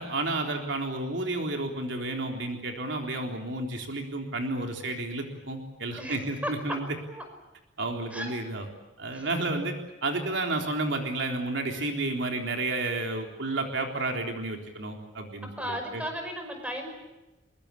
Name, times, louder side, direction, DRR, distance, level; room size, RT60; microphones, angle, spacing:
voice 1, 0.0-6.9 7.8-8.7 9.0-9.8 10.0-16.0, right 2 dB, 75° right, 3 dB, 3.8 m, -31 dB
voice 2, 6.0-6.8 7.1-7.2 8.1-8.3 9.1-9.3 15.6-16.9, equal, 5° right, 4 dB, 5.4 m, -35 dB
24.0 x 22.5 x 8.5 m, 1.0 s
head